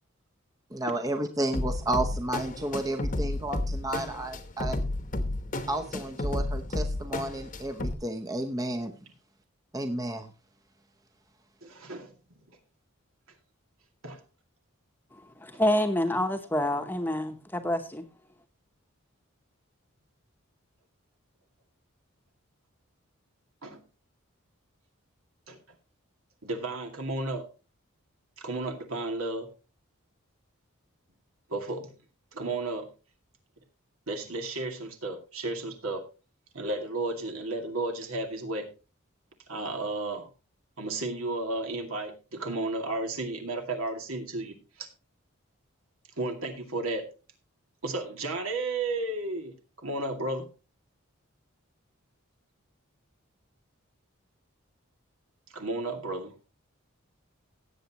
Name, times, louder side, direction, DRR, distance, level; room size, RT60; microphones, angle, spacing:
voice 1, 0.7-4.8 5.7-8.9 9.7-10.3, right 1 dB, 15° right, 0.7 m, -32 dB
sound 1, 1.5-7.9, left 1 dB, 35° left, 1.0 m, -32 dB
voice 2, 11.6-12.4 14.0-14.2 23.6-23.8 25.5-25.6 26.4-27.5 28.4-29.5 31.5-31.9 32.3-32.9 34.1-36.0 36.5-38.7 39.5-40.3 40.8-44.9 46.2-47.1 47.8-50.5 55.5-56.3, right 2 dB, 80° right, 2.3 m, -33 dB
voice 3, 15.4-18.0, left 1 dB, 10° left, 1.0 m, -27 dB
17.5 x 7.9 x 3.0 m
head